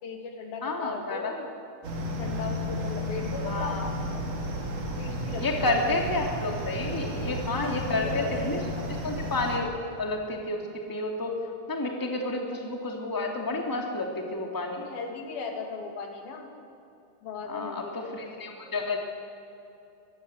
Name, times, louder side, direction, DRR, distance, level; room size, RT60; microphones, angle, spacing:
voice 1, 0.0-1.5 2.2-3.8 4.1-4.5 4.8-6.0 7.8-8.8 11.5-11.6 13.8-14.0 14.8-16.5 17.2-18.5, left 4 dB, 85° left, 3 dB, 4.7 m, -38 dB
voice 2, 0.6-1.3 3.5-3.9 5.4-10.6 10.9-11.4 11.7-14.9 17.5-17.8 18.1-19.0, left 2 dB, 5° left, 1 dB, 2.4 m, -30 dB
sound 1, 1.8-9.6, equal, 45° right, 3.8 m, -33 dB
24.0 x 21.0 x 8.2 m, 2.8 s
omnidirectional pair, 4.1 m